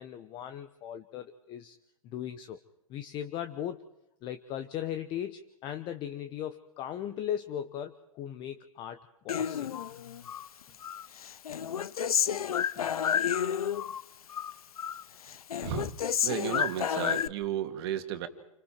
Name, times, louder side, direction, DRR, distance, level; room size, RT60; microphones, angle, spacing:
voice 1, 0.0-1.8 2.0-2.6 2.9-3.8 4.2-9.8 12.8-12.9, left 10 dB, 25° left, 9 dB, 1.0 m, -38 dB
Human voice, 9.3-10.5 10.8-14.0 14.3-15.0 15.3-17.3, left 8 dB, 90° left, 0.8 m, -30 dB
voice 2, 15.6-15.9 16.2-18.3, right 11 dB, 45° right, 6 dB, 2.3 m, -33 dB
29.0 x 25.5 x 4.5 m, 0.86 s
hypercardioid pair, 145°, 18 cm